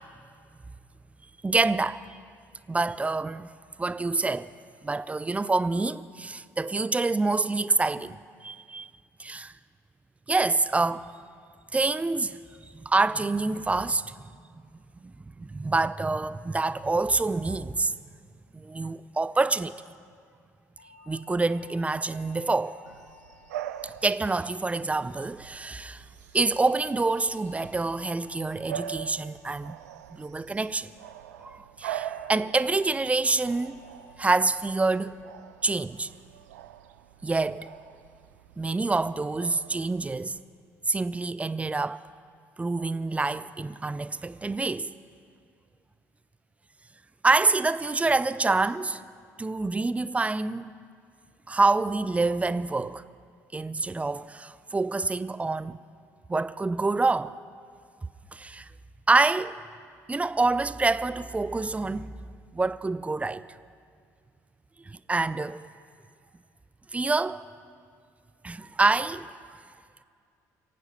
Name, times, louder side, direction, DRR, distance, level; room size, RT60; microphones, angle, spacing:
voice 1, 1.4-2.0 2.7-3.5 3.8-4.5 4.8-8.9 9.2-9.5 10.3-11.1 11.7-12.4 12.7-14.2 15.0-17.9 18.5-19.7 21.1-22.8 23.8-26.0 26.3-29.8 30.1-30.9 31.4-33.8 34.2-35.2 35.6-36.1 37.2-37.7 38.6-40.4 40.9-42.0 42.6-44.9 47.2-49.0 49.4-50.7 51.5-53.0 53.5-55.8 56.3-57.4 58.3-58.7 59.1-59.6 60.1-62.1 62.5-63.4 64.9-65.7 66.9-67.4 68.4-69.4, right 3 dB, 15° right, 0.5 m, -26 dB
sound 1, 20.8-25.2 26.4-30.8 32.0-32.3 32.7-33.1 33.5-33.9 34.3-34.7 35.1-35.5 35.9-36.3, left 7 dB, 70° left, 2.9 m, -56 dB
Bark / Bird vocalization bird call bird song, 22.9-40.4, right 11 dB, 75° right, 0.5 m, -43 dB
27.5 x 9.2 x 5.5 m
figure-of-eight pair, 55°, 9 cm